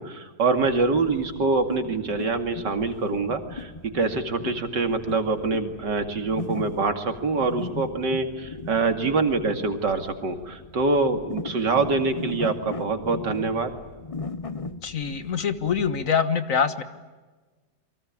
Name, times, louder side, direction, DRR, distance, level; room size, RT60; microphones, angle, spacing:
voice 1, 0.0-13.7, right 3 dB, 90° right, 6 dB, 3.0 m, -25 dB
sound 1, 0.6-16.1, left 3 dB, 30° left, 0.7 m, -38 dB
voice 2, 14.8-16.8, left 6 dB, 50° left, 11 dB, 1.7 m, -24 dB
28.0 x 23.5 x 8.6 m, 1.3 s
omnidirectional pair, 1.8 m